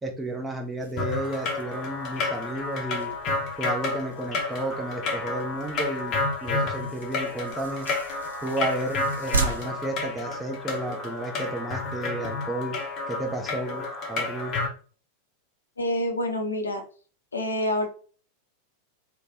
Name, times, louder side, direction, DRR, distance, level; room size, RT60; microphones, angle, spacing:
voice 1, 0.0-3.1 3.6-7.9 8.4-12.7 13.1-13.8 14.1-14.5, right 2 dB, 10° right, 3 dB, 0.6 m, -32 dB
sound 1, 0.8-10.9, right 4 dB, 70° right, 0.5 m, -37 dB
sound 2, 1.0-14.7, left 3 dB, 35° left, 0.7 m, -31 dB
voice 2, 15.8-16.8 17.3-17.9, left 1 dB, 75° left, 3 dB, 0.6 m, -27 dB
3.1 x 2.1 x 2.8 m, 0.41 s
figure-of-eight pair, 90°, 0 cm